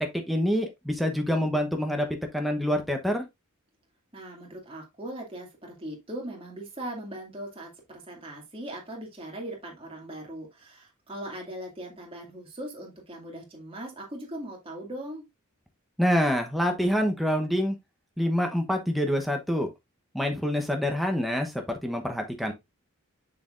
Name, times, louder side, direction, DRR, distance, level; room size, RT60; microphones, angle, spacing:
voice 1, 0.1-2.1 2.3-3.2 16.0-17.7 18.2-19.7 20.1-22.5, equal, ahead, 0.9 m, -26 dB
voice 2, 4.1-15.2, right 1 dB, 25° right, 2.2 m, -39 dB
6.8 x 6.5 x 2.5 m
head